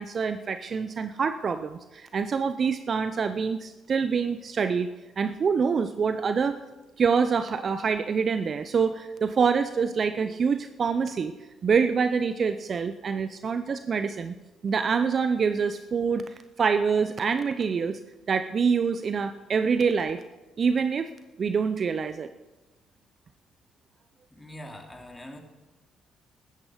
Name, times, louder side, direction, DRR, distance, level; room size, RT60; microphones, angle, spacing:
voice 1, 0.0-4.9 5.2-6.6 7.0-11.3 11.6-14.3 14.6-16.2 16.6-18.0 18.3-20.2 20.6-21.1 21.4-22.3, right 5 dB, 50° right, 11 dB, 0.6 m, -26 dB
voice 2, 24.3-25.4, equal, 15° left, 2 dB, 2.9 m, -43 dB
15.0 x 13.0 x 5.0 m, 1.1 s
hypercardioid pair, 50°, 0 cm